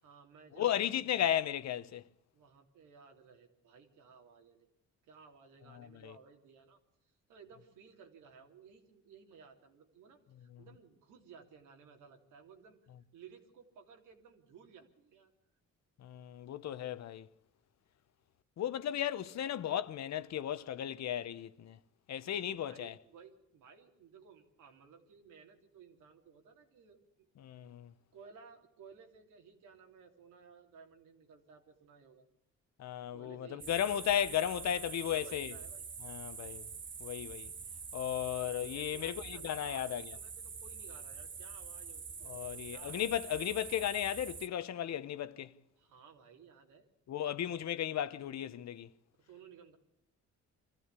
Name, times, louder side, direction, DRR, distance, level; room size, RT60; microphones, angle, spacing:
voice 1, 0.0-1.1 2.3-4.7 5.1-6.8 7.3-12.8 13.1-15.3 22.5-27.0 28.1-32.3 33.1-34.2 34.6-35.9 38.4-43.3 45.8-46.9 49.2-49.8, right 6 dB, 85° right, 3.2 m, -57 dB
voice 2, 0.6-2.0 5.8-6.1 16.0-17.3 18.6-21.8 22.1-22.9 27.4-27.9 32.8-35.5 36.0-36.7 37.0-37.5 37.9-40.1 42.3-45.5 47.1-48.9, left 10 dB, 60° left, 1.0 m, -35 dB
sound 1, 33.6-44.5, right 5 dB, 40° right, 1.4 m, -46 dB
24.5 x 14.5 x 8.3 m
cardioid pair, 90°, 30 cm